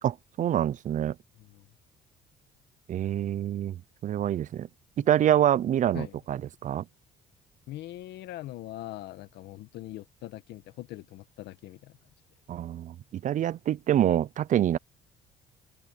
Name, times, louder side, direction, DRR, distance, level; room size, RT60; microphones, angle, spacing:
voice 1, 0.0-1.2 2.9-4.7 5.0-6.8 12.5-14.8, right 11 dB, 50° right, 0.6 m, -26 dB
voice 2, 1.3-1.7 4.2-4.4 5.0-5.1 5.9-6.2 7.7-12.0, left 15 dB, 80° left, 1.9 m, -42 dB
cardioid pair, 110°, 17 cm